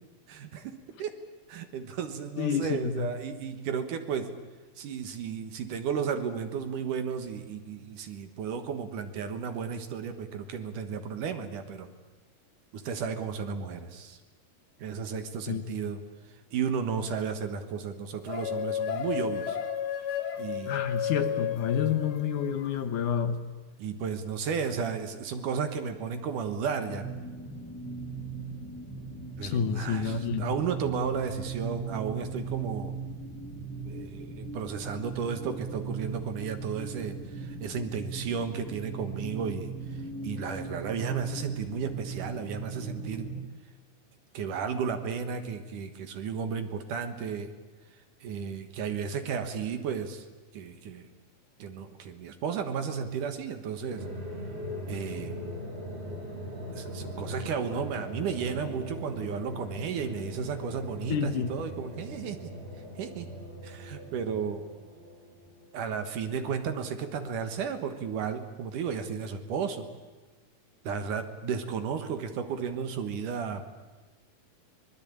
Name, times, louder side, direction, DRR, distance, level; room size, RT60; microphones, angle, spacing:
voice 1, 0.3-1.1 1.5-4.3 4.8-11.9 12.7-14.2 14.8-16.0 16.5-19.6 20.0-20.1 20.4-20.8 23.8-27.1 29.4-32.9 33.9-43.3 44.3-47.5 48.2-50.3 50.5-51.1 51.6-54.0 54.9-55.4 56.7-62.6 63.0-63.3 63.6-64.6 65.7-69.9 70.8-73.6, right 6 dB, 65° right, 8 dB, 2.7 m, -33 dB
voice 2, 2.4-3.1 15.5-15.6 20.7-23.4 29.4-30.5 61.1-61.5, left 7 dB, 65° left, 9 dB, 2.2 m, -29 dB
sound 1, 18.3-22.8, left 9 dB, 85° left, 1.1 m, -33 dB
sound 2, 26.9-43.4, right 4 dB, 10° left, 0.6 m, -38 dB
sound 3, 53.9-66.0, equal, 80° right, 7.9 m, -40 dB
25.0 x 21.0 x 8.7 m, 1.3 s
omnidirectional pair, 4.3 m